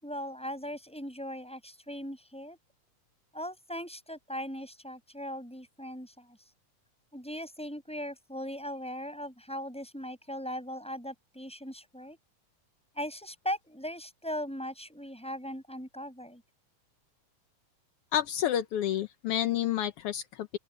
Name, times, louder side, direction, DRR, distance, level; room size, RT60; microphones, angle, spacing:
voice 1, 0.0-2.6 3.3-6.4 7.1-12.2 12.9-16.4, equal, ahead, 7.5 m, -39 dB
voice 2, 18.1-20.6, left 11 dB, 80° left, 1.3 m, -29 dB
open air
omnidirectional pair, 3.7 m